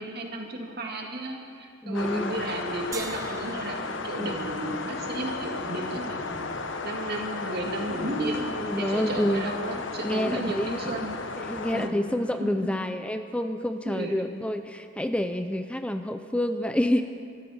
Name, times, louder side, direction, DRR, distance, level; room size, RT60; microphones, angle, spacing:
voice 1, 0.0-3.8 4.0-8.4 8.8-11.2 11.7-12.0 12.4-12.8 13.9-14.3, right 1 dB, 55° right, 1 dB, 2.2 m, -33 dB
voice 2, 1.8-2.3 4.2-4.3 4.7-4.8 8.3-9.5 10.0-10.9 11.4-17.0, left 1 dB, 5° left, 8 dB, 0.4 m, -28 dB
sound 1, 1.9-11.9, left 3 dB, 75° left, 1.0 m, -34 dB
sound 2, 2.9-5.5, right 5 dB, 20° right, 0.7 m, -44 dB
24.0 x 13.5 x 4.3 m, 2.3 s
head